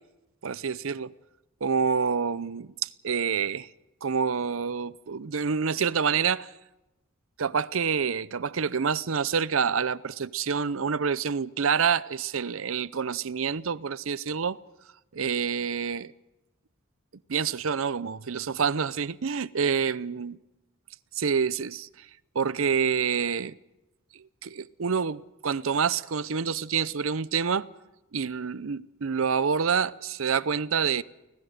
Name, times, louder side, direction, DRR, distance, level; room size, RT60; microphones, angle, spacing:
voice 1, 0.4-1.1 1.6-3.7 4.0-6.5 7.4-14.6 15.1-16.1 17.3-20.4 21.1-22.1 22.3-23.6 24.1-27.7 28.1-31.0, right 6 dB, 70° right, 0.6 m, -27 dB
25.0 x 18.0 x 6.7 m
head